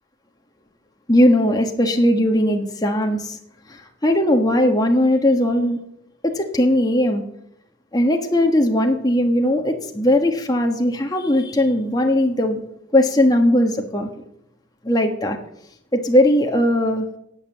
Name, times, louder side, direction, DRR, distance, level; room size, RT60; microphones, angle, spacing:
voice 1, 1.1-3.4 4.0-5.8 6.2-7.2 7.9-12.6 12.9-14.1 14.8-15.4 15.9-17.0, left 1 dB, 20° left, 2 dB, 1.3 m, -18 dB
18.0 x 7.4 x 7.2 m, 0.79 s
head